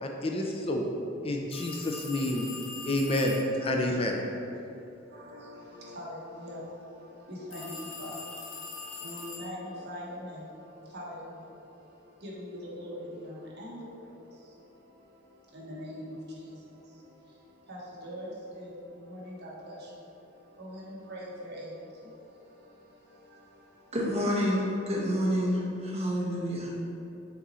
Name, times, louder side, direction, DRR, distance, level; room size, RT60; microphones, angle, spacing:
voice 1, 0.0-0.9 1.2-2.5 2.9-4.2, left 1 dB, 30° left, 1 dB, 0.5 m, -29 dB
sound 1, 1.5-3.6 7.5-9.7, left 3 dB, 90° left, 1.0 m, -42 dB
voice 2, 5.1-23.9, equal, 55° right, -5 dB, 1.4 m, -43 dB
voice 3, 23.9-26.8, equal, 35° right, -4 dB, 1.2 m, -28 dB
6.1 x 4.1 x 4.3 m, 2.7 s
head